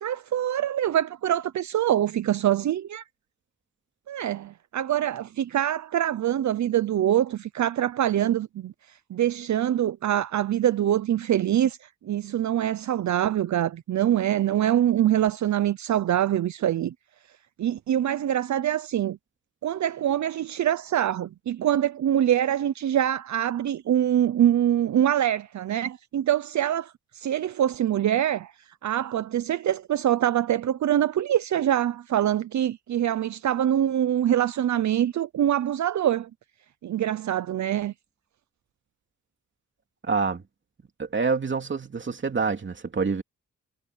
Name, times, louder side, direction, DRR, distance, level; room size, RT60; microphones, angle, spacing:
voice 1, 0.0-3.0 4.1-16.9 17.6-19.2 19.6-28.5 28.8-36.3 36.8-37.9, right 11 dB, 70° right, 0.6 m, -24 dB
voice 2, 40.0-40.4 41.0-43.2, right 4 dB, 40° right, 2.8 m, -26 dB
wide cardioid pair, 125°, 30 cm